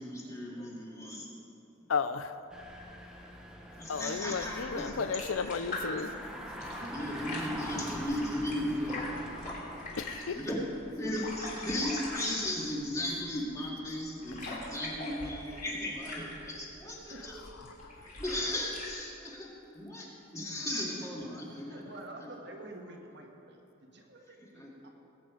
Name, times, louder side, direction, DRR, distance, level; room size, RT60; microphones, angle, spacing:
voice 1, 0.0-1.4 3.8-5.5 6.0-6.1 6.9-9.0 10.3-10.7 11.0-17.4 17.9-20.1 20.3-21.8 22.2-22.3 24.2-24.7, left 1 dB, 15° left, -3 dB, 2.1 m, -36 dB
voice 2, 1.9-2.3 3.9-6.1 10.0-10.4 14.4-14.5, left 5 dB, 75° left, 12 dB, 0.5 m, -33 dB
Engine, 2.5-10.3, equal, 5° right, 1.1 m, -43 dB
sound 1, 4.4-18.9, left 2 dB, 40° left, 2.9 m, -43 dB
voice 3, 6.4-6.9 8.0-9.6 17.1-17.2 21.2-24.9, right 2 dB, 55° right, 1 dB, 1.6 m, -50 dB
20.0 x 8.9 x 5.0 m, 2.8 s
head